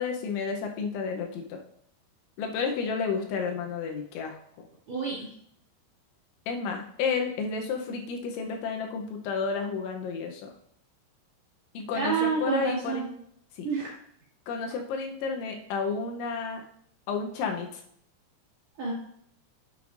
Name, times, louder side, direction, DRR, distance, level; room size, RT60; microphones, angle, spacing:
voice 1, 0.0-1.6 2.4-4.7 6.5-10.5 11.7-13.1 13.5-13.7 14.5-16.6 17.1-17.8, left 5 dB, 80° left, 3 dB, 3.0 m, -31 dB
voice 2, 4.9-5.3 11.9-13.1 13.6-13.9 18.8-18.9, right 5 dB, 45° right, -7 dB, 2.5 m, -28 dB
9.3 x 7.7 x 2.5 m, 0.67 s
omnidirectional pair, 5.6 m